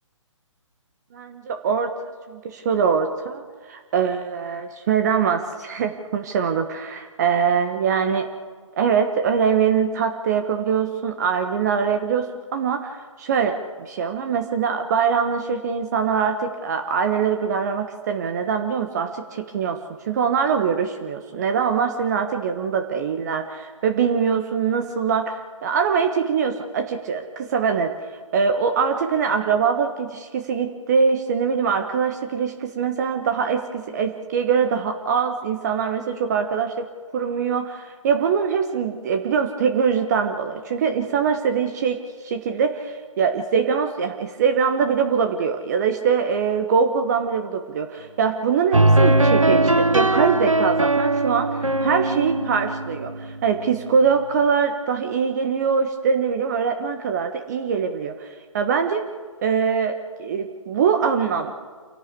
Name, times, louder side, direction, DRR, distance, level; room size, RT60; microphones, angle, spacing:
voice 1, 1.1-8.3 8.8-19.8 20.0-28.0 28.3-59.1 59.4-61.5, right 6 dB, 35° right, 6 dB, 1.3 m, -23 dB
sound 1, 48.7-53.6, right 2 dB, 85° right, 1.0 m, -20 dB
28.0 x 11.5 x 8.5 m, 1.5 s
figure-of-eight pair, 135°, 16 cm